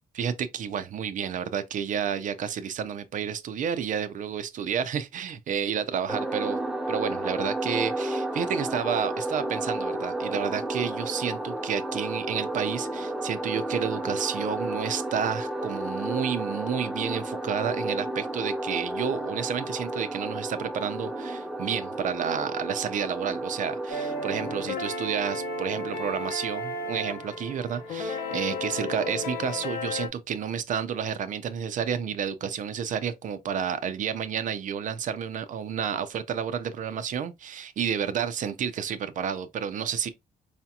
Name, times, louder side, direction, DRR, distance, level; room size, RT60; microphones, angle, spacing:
voice 1, 0.1-6.6 6.9-40.1, right 8 dB, 50° right, 0.5 m, -30 dB
sound 1, 6.1-24.7, right 1 dB, 5° right, 0.4 m, -32 dB
sound 2, 23.9-30.1, left 2 dB, 85° left, 0.9 m, -33 dB
4.9 x 2.8 x 2.3 m
cardioid pair, 140°, 16 cm